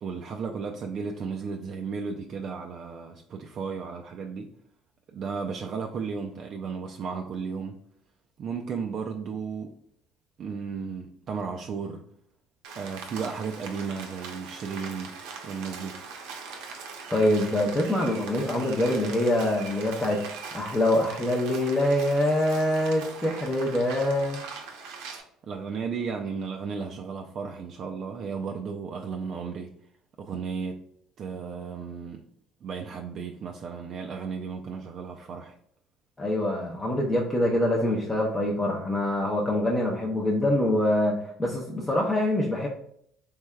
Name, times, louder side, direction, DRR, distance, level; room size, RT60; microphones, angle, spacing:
voice 1, 0.0-4.5 5.1-7.8 8.4-9.7 10.4-12.0 12.8-15.1 15.4-16.0 25.5-29.7 30.2-30.8 31.2-32.2 32.6-35.5, right 5 dB, 45° right, 0.3 m, -34 dB
Rain, 12.6-25.2, right 5 dB, 90° right, 0.7 m, -41 dB
voice 2, 17.1-24.4 36.2-42.7, left 1 dB, 10° left, 0.5 m, -25 dB
3.5 x 3.2 x 2.2 m
cardioid pair, 130°, 0 cm